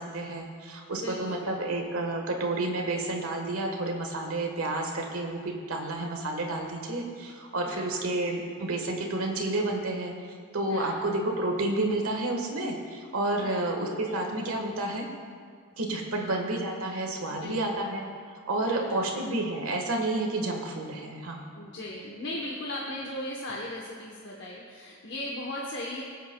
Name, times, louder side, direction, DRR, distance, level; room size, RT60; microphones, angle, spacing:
voice 1, 0.0-10.1 10.5-15.1 15.8-18.1 18.5-21.5, right 2 dB, 80° right, 2 dB, 1.3 m, -30 dB
voice 2, 0.9-1.8 7.6-7.9 10.7-11.0 13.4-13.7 16.1-16.3 17.3-17.8 18.6-19.4 21.5-26.0, left 1 dB, 50° left, -3 dB, 1.0 m, -38 dB
21.0 x 8.2 x 2.2 m, 2.1 s
head